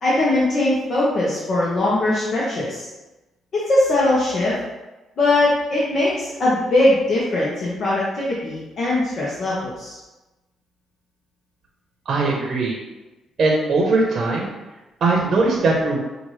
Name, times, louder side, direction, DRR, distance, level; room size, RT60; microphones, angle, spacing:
voice 1, 0.0-2.9 3.5-4.6 5.2-10.0, left 2 dB, 55° left, -7 dB, 1.0 m, -20 dB
voice 2, 12.1-12.8 13.4-14.5 15.0-16.0, right 3 dB, 55° right, -1 dB, 0.8 m, -20 dB
5.8 x 2.6 x 3.2 m, 1.1 s
cardioid pair, 90°, 0 cm